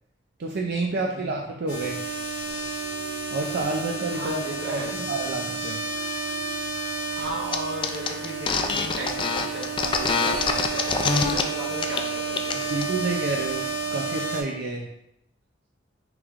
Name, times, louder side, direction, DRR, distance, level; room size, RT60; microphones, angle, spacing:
voice 1, 0.4-2.0 3.3-5.8 12.7-14.9, right 3 dB, 60° right, 0 dB, 0.4 m, -29 dB
voice 2, 0.9-1.2 4.1-5.0 7.1-12.7, right 1 dB, 80° right, -4 dB, 1.3 m, -36 dB
sound 1, 1.7-14.4, right 3 dB, 70° left, 1.2 m, -31 dB
sound 2, 7.5-7.6 7.8-11.4 11.8-12.0 12.3-12.8, left 4 dB, 25° left, 0.3 m, -24 dB
6.0 x 3.2 x 2.5 m, 0.80 s
head